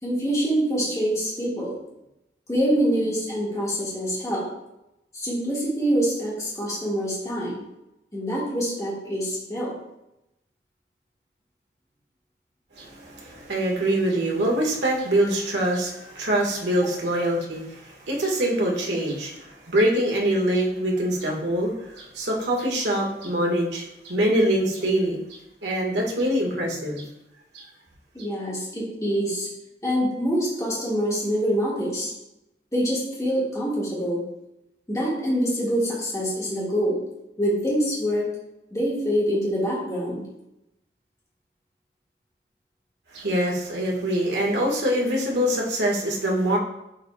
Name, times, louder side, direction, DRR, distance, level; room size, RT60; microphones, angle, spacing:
voice 1, 0.0-1.8 2.5-4.5 5.1-7.6 8.1-9.7 17.1-17.2 28.1-29.5 29.8-32.1 32.7-34.2 34.9-37.0 37.4-38.2 38.7-40.2, equal, 20° left, -6 dB, 1.7 m, -25 dB
voice 2, 12.7-27.0 27.5-27.6 43.1-46.6, right 1 dB, 85° right, -2 dB, 1.6 m, -24 dB
9.6 x 4.2 x 2.3 m, 0.86 s
head